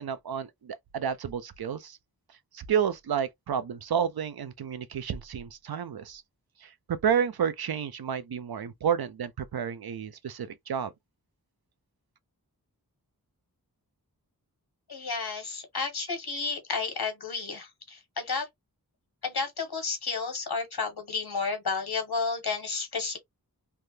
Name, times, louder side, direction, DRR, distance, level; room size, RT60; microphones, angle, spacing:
voice 1, 0.0-2.0 2.5-6.2 6.6-6.7 7.0-10.9, right 8 dB, 75° right, 0.5 m, -30 dB
voice 2, 14.9-18.5 19.2-23.2, left 4 dB, 90° left, 1.3 m, -32 dB
3.4 x 2.2 x 2.8 m
wide cardioid pair, 65°, 37 cm